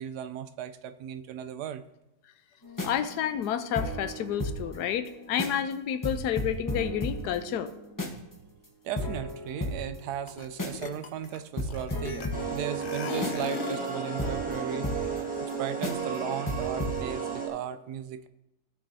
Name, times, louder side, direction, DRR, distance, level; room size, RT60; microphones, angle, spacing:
voice 1, 0.0-1.8 8.1-8.2 8.8-18.3, right 9 dB, 90° right, 11 dB, 1.2 m, -36 dB
sound 1, 2.6-4.8 5.1-5.2 5.4-5.7 6.0-8.3 8.6-8.7 9.0-10.9 11.3-11.4 11.6-15.5 15.8-16.2 16.5-17.0, left 1 dB, 15° left, 0.8 m, -35 dB
voice 2, 2.8-7.7, left 9 dB, 90° left, 11 dB, 1.2 m, -30 dB
sound 2, 10.3-10.5 10.7-12.5 12.8-13.9, left 6 dB, 70° left, 0.4 m, -37 dB
sound 3, 12.3-17.5, right 5 dB, 5° right, 1.1 m, -33 dB
15.0 x 6.1 x 2.7 m, 0.91 s
omnidirectional pair, 1.7 m